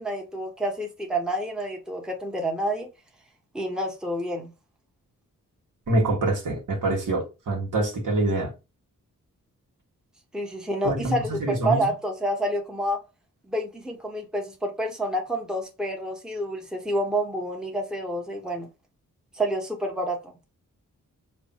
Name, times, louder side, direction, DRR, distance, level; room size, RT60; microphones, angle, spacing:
voice 1, 0.0-2.9 3.5-4.5 10.3-13.0 13.5-18.7 19.3-20.2, right 1 dB, ahead, 1.0 m, -28 dB
voice 2, 5.9-8.5 10.8-11.9, right 2 dB, 65° right, 1.4 m, -25 dB
3.3 x 2.2 x 4.1 m
cardioid pair, 55°, 33 cm